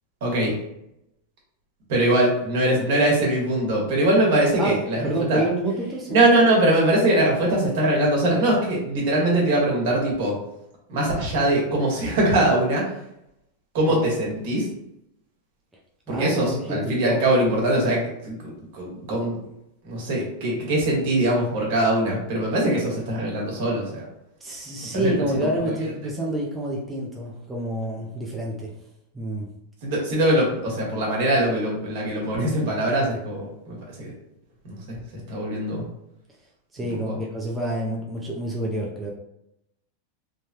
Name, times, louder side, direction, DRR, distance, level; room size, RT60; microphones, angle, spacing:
voice 1, 0.2-0.5 1.9-5.4 6.1-10.4 10.9-12.8 13.7-14.7 16.1-19.4 19.8-24.1 24.8-25.1 25.4-25.5 29.8-34.1 34.6-35.0 35.3-35.8 37.0-37.2, right 1 dB, 65° right, -2 dB, 1.3 m, -22 dB
voice 2, 5.0-6.2 16.1-17.2 24.4-28.7 29.1-29.5 36.7-39.1, right 1 dB, 10° right, -4 dB, 0.5 m, -28 dB
3.2 x 2.2 x 2.8 m, 0.84 s
supercardioid pair, 135°, 0 cm